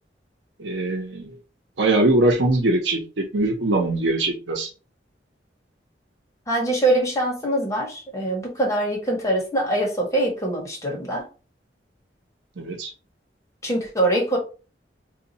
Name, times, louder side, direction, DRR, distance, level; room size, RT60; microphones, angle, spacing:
voice 1, 0.6-1.3 1.8-4.7 12.6-12.9, right 2 dB, 80° right, 0.8 m, -22 dB
voice 2, 6.5-11.2 13.6-14.4, right 1 dB, 20° left, 1.1 m, -23 dB
2.8 x 2.3 x 4.0 m
head